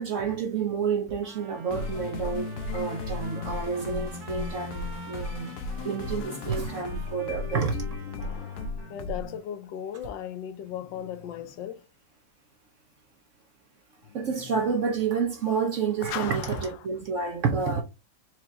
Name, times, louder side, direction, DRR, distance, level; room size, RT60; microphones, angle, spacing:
voice 1, 0.0-5.5 5.8-7.8 14.1-17.8, right 5 dB, 60° right, 0.8 m, -29 dB
Trumpet, 1.2-9.0, right 6 dB, 75° right, 1.5 m, -49 dB
sound 1, 1.7-9.4, left 3 dB, 60° left, 1.0 m, -35 dB
voice 2, 8.2-11.9 14.0-14.6 16.1-16.8, left 10 dB, 85° left, 1.3 m, -38 dB
4.8 x 2.9 x 3.8 m
omnidirectional pair, 1.9 m